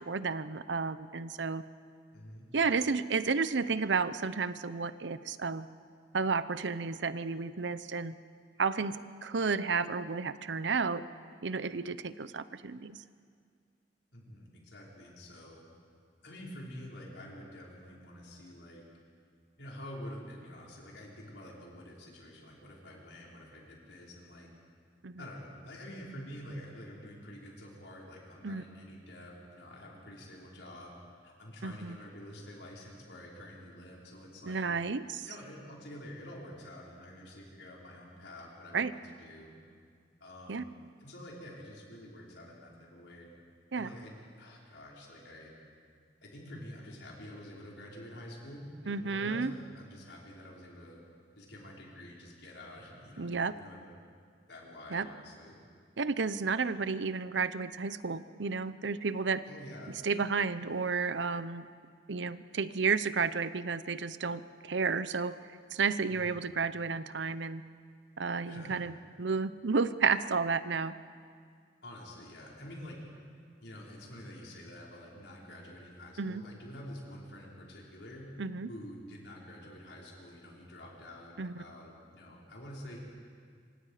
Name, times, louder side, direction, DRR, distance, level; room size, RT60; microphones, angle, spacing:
voice 1, 0.0-1.6 2.5-5.7 6.1-8.1 8.6-11.0 11.4-13.0 25.0-25.2 28.4-28.6 31.6-32.0 34.4-35.3 38.7-38.9 40.5-40.6 43.7-43.9 48.9-49.5 53.2-53.5 54.9-55.1 56.0-59.4 60.0-61.7 62.1-65.4 65.7-67.6 68.2-70.9 76.2-76.4 78.4-78.7 81.4-81.6, right 5 dB, 85° right, 14 dB, 0.7 m, -32 dB
voice 2, 2.1-2.5 14.1-15.6 16.2-18.8 19.6-24.5 25.2-31.0 31.2-34.6 35.3-39.5 40.2-40.7 41.0-43.3 43.8-45.5 46.2-51.0 51.4-53.8 54.5-55.5 59.5-60.0 66.1-66.4 68.4-68.8 71.8-73.0 73.6-78.3 78.7-83.0, left 1 dB, 85° left, -3 dB, 5.4 m, -48 dB
27.0 x 25.0 x 5.0 m, 2.1 s
head